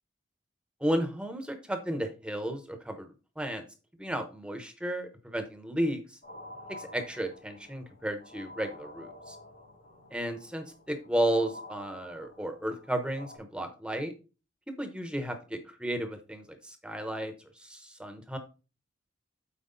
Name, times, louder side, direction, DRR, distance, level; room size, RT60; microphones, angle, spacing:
voice 1, 0.8-3.1 3.4-3.6 4.0-6.0 6.7-9.4 10.1-14.1 14.8-17.3 17.6-18.4, right 1 dB, 5° right, 7 dB, 0.8 m, -33 dB
sound 1, 6.2-13.4, left 1 dB, 85° left, 3.5 m, -49 dB
8.2 x 4.6 x 3.9 m, 0.32 s
head